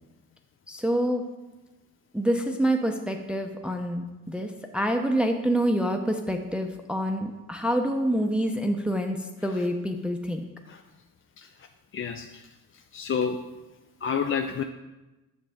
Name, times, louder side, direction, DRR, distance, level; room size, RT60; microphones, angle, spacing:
voice 1, 0.7-1.2 2.1-9.2 9.4-10.4, equal, 5° right, 4 dB, 0.7 m, -27 dB
voice 2, 11.9-12.2 12.9-13.4 14.0-14.6, left 6 dB, 35° left, 5 dB, 0.5 m, -27 dB
7.7 x 6.3 x 3.5 m, 1.1 s
cardioid pair, 65°, 36 cm